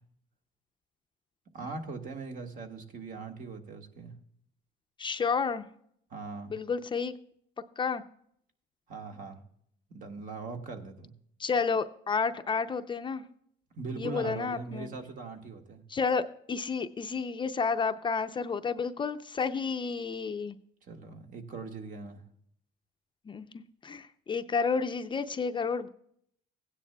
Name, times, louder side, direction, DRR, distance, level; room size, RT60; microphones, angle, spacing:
voice 1, 1.5-4.1 6.1-6.5 8.9-9.4 9.9-11.1 13.7-15.8 20.9-22.2, right 4 dB, 50° right, 4 dB, 1.6 m, -40 dB
voice 2, 5.0-5.7 6.5-7.1 7.8-8.0 11.4-13.2 14.0-14.9 15.9-20.6 23.3-25.9, left 5 dB, 30° left, 9 dB, 0.5 m, -31 dB
16.5 x 9.9 x 2.3 m, 0.67 s
cardioid pair, 110°, 17 cm